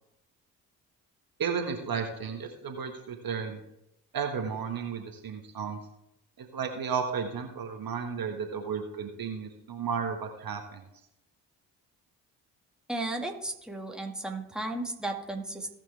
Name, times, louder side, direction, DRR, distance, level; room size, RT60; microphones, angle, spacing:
voice 1, 1.4-3.6 4.1-5.8 6.4-10.8, right 6 dB, 50° right, 5 dB, 1.6 m, -33 dB
voice 2, 12.9-15.7, right 2 dB, ahead, 2 dB, 2.0 m, -34 dB
17.5 x 6.0 x 3.4 m, 0.81 s
hypercardioid pair, 45°, 46 cm